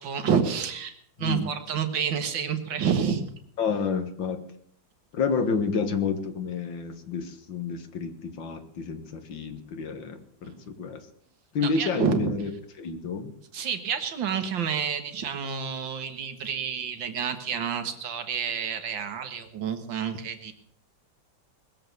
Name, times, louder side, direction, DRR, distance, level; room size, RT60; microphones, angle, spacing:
voice 1, 0.0-3.2 10.4-10.6 11.6-12.3 13.5-20.5, right 7 dB, 75° right, 7 dB, 2.3 m, -29 dB
voice 2, 3.6-4.4 5.1-11.0 11.5-12.5 12.8-13.3, left 5 dB, 75° left, 8 dB, 2.3 m, -29 dB
20.5 x 7.7 x 8.0 m, 0.63 s
omnidirectional pair, 2.1 m